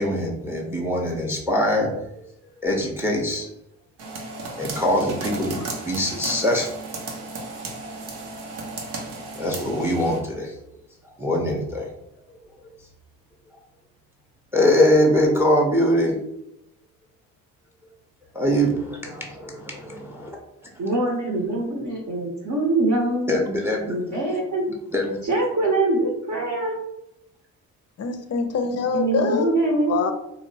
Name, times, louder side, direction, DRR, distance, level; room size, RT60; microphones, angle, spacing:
voice 1, 0.0-2.2 2.6-3.5 4.6-6.7 9.3-10.6 11.0-11.9 12.8-12.9 14.5-16.2 18.3-20.4 23.3-24.0 24.3-24.4 24.9-25.2, left 1 dB, 5° right, 1 dB, 0.6 m, -23 dB
sound 1, 4.0-10.2, right 3 dB, 80° right, 0.7 m, -34 dB
voice 2, 20.8-23.3 23.9-24.7 25.2-26.8 28.9-29.9, right 2 dB, 45° right, -1 dB, 0.8 m, -23 dB
voice 3, 28.0-30.1, left 5 dB, 40° left, 6 dB, 0.5 m, -25 dB
2.9 x 2.0 x 2.7 m, 0.83 s
hypercardioid pair, 50°, 40 cm